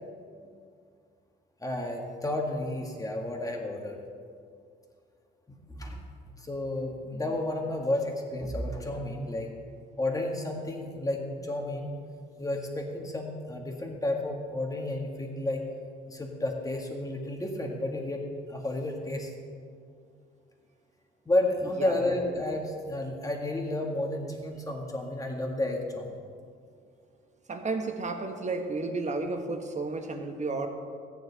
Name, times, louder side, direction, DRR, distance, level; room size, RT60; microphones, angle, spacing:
voice 1, 1.6-4.0 5.5-6.0 6.4-9.5 10.0-11.9 12.4-15.7 16.1-18.2 18.5-19.3 21.3-26.2, left 1 dB, 15° left, 1 dB, 1.8 m, -31 dB
voice 2, 27.5-30.7, right 3 dB, 35° right, 4 dB, 1.3 m, -32 dB
13.5 x 9.2 x 4.1 m, 2.2 s
cardioid pair, 90°, 20 cm